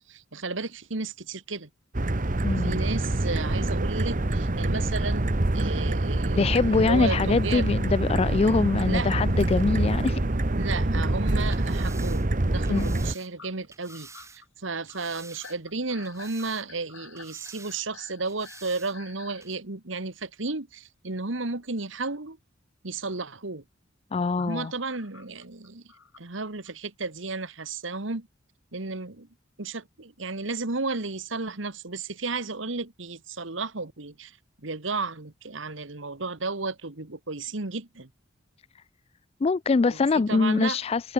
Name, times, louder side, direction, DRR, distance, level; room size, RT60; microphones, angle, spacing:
voice 1, 0.1-1.7 2.6-5.3 5.5-7.7 8.8-9.1 10.6-22.4 22.8-23.6 24.4-25.8 26.2-28.3 28.7-29.3 29.6-34.3 34.6-38.1 39.9-40.0 40.3-40.8, right 3 dB, 70° right, 1.8 m, -33 dB
sound 1, 1.9-13.1, right 1 dB, 40° right, 1.2 m, -26 dB
voice 2, 2.4-2.8 6.4-10.2 12.7-13.0 24.1-24.7 39.4-41.1, left 4 dB, 30° left, 0.3 m, -24 dB
sound 2, 8.2-9.9 10.2-11.8 12.2-12.4 12.7-12.8 13.4-19.5 20.2-20.3 22.2-22.3 24.4-26.7, left 6 dB, 75° left, 4.3 m, -51 dB
sound 3, 11.5-14.4 14.9-15.7 16.0-16.9 17.2-17.8 18.2-19.0 19.4-19.5, right 4 dB, 15° right, 3.2 m, -49 dB
head